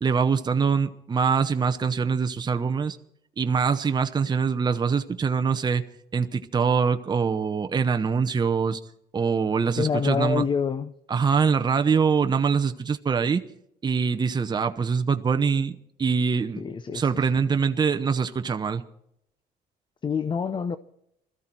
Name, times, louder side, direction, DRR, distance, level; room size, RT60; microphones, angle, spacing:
voice 1, 0.0-3.0 3.4-5.8 6.1-8.8 9.1-10.4 11.1-13.4 13.8-16.6 16.9-18.8, right 5 dB, 25° right, 0.8 m, -24 dB
voice 2, 9.8-10.9 16.6-17.2 20.0-20.8, left 6 dB, 30° left, 0.7 m, -26 dB
21.0 x 14.0 x 4.5 m
cardioid pair, 110°, 17 cm